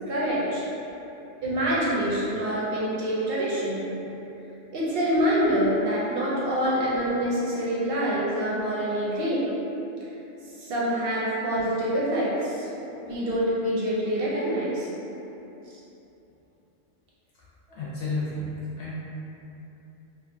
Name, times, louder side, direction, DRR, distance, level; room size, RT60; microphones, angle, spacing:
voice 1, 0.1-0.6 1.4-3.9 4.7-9.5 10.6-14.9, equal, 60° right, -7 dB, 0.7 m, -26 dB
voice 2, 17.7-18.9, left 2 dB, 60° left, -9 dB, 0.8 m, -32 dB
2.7 x 2.3 x 2.5 m, 3.0 s
omnidirectional pair, 1.3 m